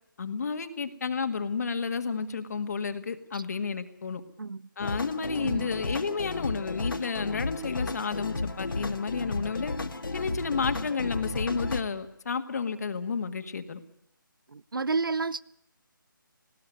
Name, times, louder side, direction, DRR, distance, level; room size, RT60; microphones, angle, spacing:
voice 1, 0.2-4.2 4.8-9.8 10.1-13.8, left 5 dB, 50° left, 1.8 m, -31 dB
sound 1, 4.8-11.8, left 3 dB, 75° left, 1.8 m, -33 dB
voice 2, 14.5-15.4, right 4 dB, 75° right, 0.8 m, -30 dB
20.0 x 16.5 x 9.6 m
figure-of-eight pair, 155°, 11 cm